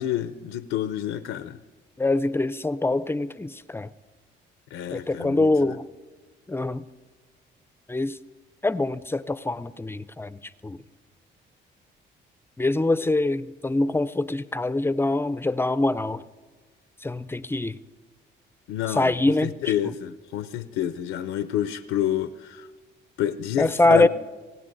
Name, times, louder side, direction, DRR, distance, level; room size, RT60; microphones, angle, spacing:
voice 1, 0.0-1.6 4.7-5.8 18.7-19.1 19.4-22.7 23.2-24.1, left 11 dB, 90° left, 0.5 m, -28 dB
voice 2, 2.0-3.9 4.9-5.8 6.5-6.8 7.9-8.1 8.6-10.4 10.6-10.8 12.6-16.2 17.0-17.7 18.9-19.5 23.6-24.1, left 2 dB, 10° left, 0.4 m, -24 dB
26.0 x 18.0 x 2.6 m
cardioid pair, 90°, 20 cm